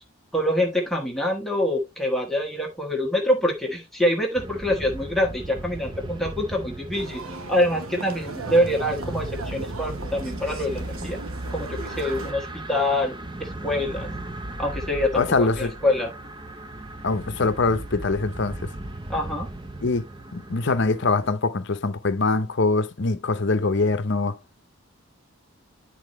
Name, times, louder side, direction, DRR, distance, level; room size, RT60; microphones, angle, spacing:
voice 1, 0.3-7.2 7.5-11.2 11.5-13.1 13.4-14.1 14.6-16.1 19.1-19.5, left 1 dB, ahead, 1.2 m, -25 dB
sound 1, 4.4-21.3, right 1 dB, 20° right, 0.7 m, -36 dB
sound 2, 6.9-12.3, right 3 dB, 70° right, 1.1 m, -37 dB
voice 2, 15.2-15.7 17.0-18.6 19.8-20.0 20.3-24.4, left 3 dB, 55° left, 0.7 m, -23 dB
10.5 x 4.2 x 3.1 m
head